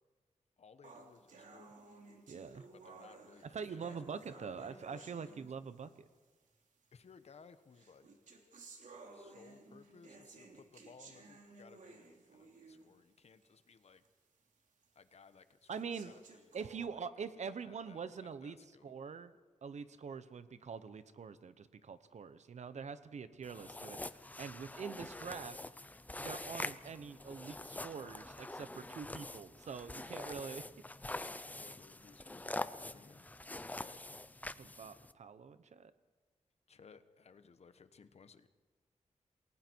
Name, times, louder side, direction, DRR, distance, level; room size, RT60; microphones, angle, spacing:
voice 1, 0.6-1.7 2.5-5.5 6.9-8.1 9.1-14.0 14.9-16.5 16.8-18.9 31.1-34.1 36.7-38.5, left 5 dB, 60° left, 11 dB, 1.2 m, -61 dB
sound 1, 0.8-6.0 6.8-6.9 7.7-13.0 13.4-13.5 14.0-14.1 14.8-14.9 15.7-16.8, right 3 dB, 85° right, 3.2 m, -56 dB
voice 2, 2.3-2.6 3.4-6.1 15.7-16.1 16.5-18.6 18.8-19.4 19.6-24.0 24.4-25.6 26.2-30.7 34.6-35.9, right 6 dB, 65° right, 13 dB, 1.0 m, -45 dB
sound 2, 23.4-35.1, left 2 dB, 10° left, 0.6 m, -45 dB
28.5 x 20.0 x 4.7 m, 1.3 s
wide cardioid pair, 145°, 13 cm